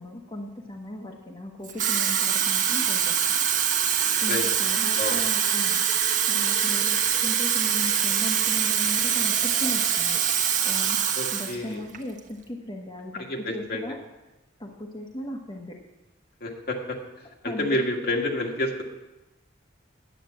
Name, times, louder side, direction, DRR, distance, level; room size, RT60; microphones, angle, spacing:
voice 1, 0.0-3.2 4.2-5.8 6.3-10.2 10.6-14.0 14.6-15.7 17.4-17.8, left 1 dB, 25° left, 0 dB, 1.3 m, -37 dB
Water tap faucet / Fill (with liquid), 1.6-11.6 11.9-12.2, right 8 dB, 45° right, 1.2 m, -24 dB
voice 2, 11.2-11.8 13.1-14.0 16.4-18.8, left 1 dB, 55° left, 2 dB, 1.8 m, -29 dB
9.3 x 9.2 x 7.7 m, 1.0 s
head